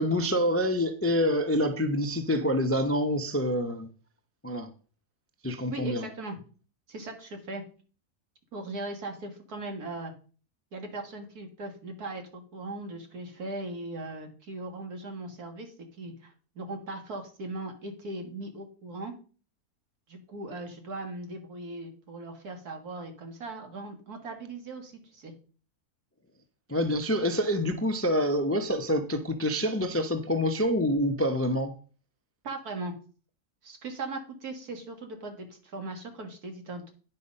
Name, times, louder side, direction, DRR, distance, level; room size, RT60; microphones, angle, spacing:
voice 1, 0.0-3.9 4.4-4.7 5.4-6.1 26.7-31.8, equal, 20° left, 0.4 m, -26 dB
voice 2, 5.7-6.4 6.9-7.6 8.5-10.1 10.7-19.1 20.1-25.3 32.4-32.9 33.6-36.9, right 2 dB, 80° right, 2.3 m, -39 dB
9.8 x 5.6 x 5.3 m
omnidirectional pair, 1.6 m